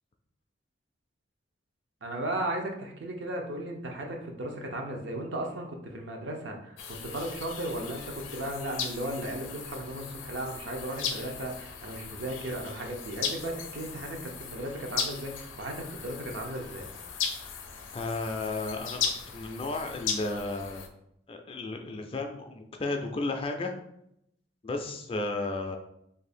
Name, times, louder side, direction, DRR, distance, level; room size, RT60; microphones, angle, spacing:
voice 1, 2.0-16.9, right 1 dB, 65° right, 2 dB, 0.6 m, -36 dB
sound 1, 6.8-20.9, left 6 dB, 85° left, 0.5 m, -37 dB
voice 2, 17.9-20.8 21.3-23.7 24.6-25.8, left 2 dB, 30° left, 4 dB, 0.3 m, -33 dB
2.7 x 2.6 x 4.2 m, 0.77 s
head